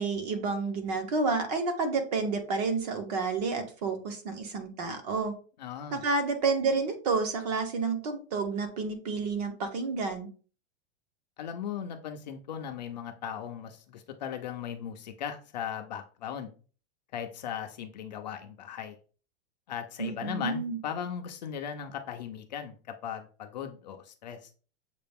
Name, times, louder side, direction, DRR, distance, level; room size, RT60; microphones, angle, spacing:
voice 1, 0.0-5.3 5.9-10.3 20.0-20.8, right 4 dB, 35° right, 7 dB, 0.7 m, -30 dB
voice 2, 5.6-6.0 11.4-16.5 17.1-19.0 19.7-24.5, left 8 dB, 40° left, 5 dB, 0.4 m, -38 dB
6.6 x 2.4 x 3.4 m, 0.38 s
supercardioid pair, 180°, 34 cm